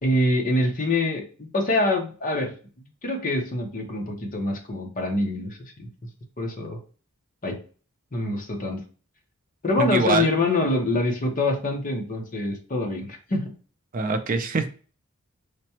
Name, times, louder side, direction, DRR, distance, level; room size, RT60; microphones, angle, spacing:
voice 1, 0.0-6.1 6.4-6.8 7.4-7.6 8.1-8.8 9.6-13.6, left 2 dB, 40° left, 2 dB, 0.9 m, -25 dB
voice 2, 9.8-10.3 13.9-14.7, right 3 dB, 40° right, 7 dB, 0.5 m, -23 dB
5.0 x 2.2 x 2.9 m, 0.38 s
head